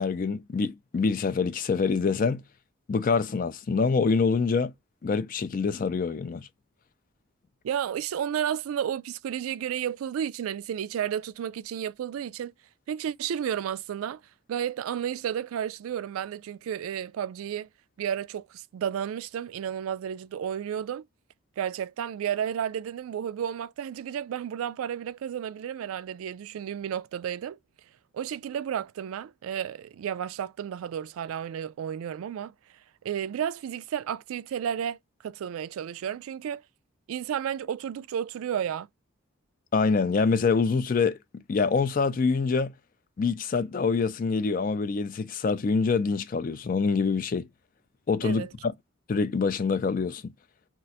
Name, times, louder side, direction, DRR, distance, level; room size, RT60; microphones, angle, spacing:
voice 1, 0.0-2.4 2.9-4.7 5.0-6.5 39.7-42.7 43.2-47.5 48.1-48.7 49.1-50.3, left 4 dB, 40° left, 0.3 m, -25 dB
voice 2, 7.6-12.5 12.9-14.2 14.5-17.7 18.0-21.0 21.6-27.6 28.1-32.5 33.0-35.0 35.2-36.6 37.1-38.9 48.2-48.5, right 9 dB, 85° right, 0.3 m, -32 dB
2.5 x 2.2 x 4.0 m
head